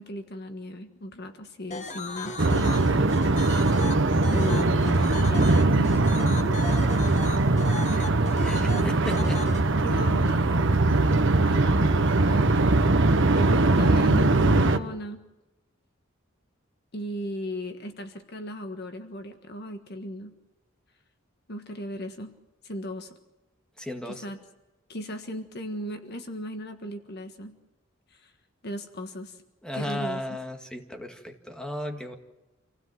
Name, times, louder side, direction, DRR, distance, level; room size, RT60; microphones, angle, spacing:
voice 1, 0.0-3.1 4.3-7.1 8.6-9.5 9.8-10.9 11.5-12.7 13.3-15.2 16.9-20.3 21.5-22.3 22.6-23.1 24.1-24.4 24.9-27.5 28.1-28.3 28.6-29.4 29.7-30.2, equal, 55° left, 7 dB, 1.6 m, -37 dB
sound 1, 1.7-9.6, left 4 dB, 35° left, 1.7 m, -37 dB
sound 2, 2.4-14.8, right 2 dB, 65° right, 1.1 m, -21 dB
voice 2, 8.4-9.5 23.8-24.2 29.6-32.2, equal, 5° left, 4 dB, 1.9 m, -35 dB
27.0 x 16.5 x 7.8 m, 1.0 s
head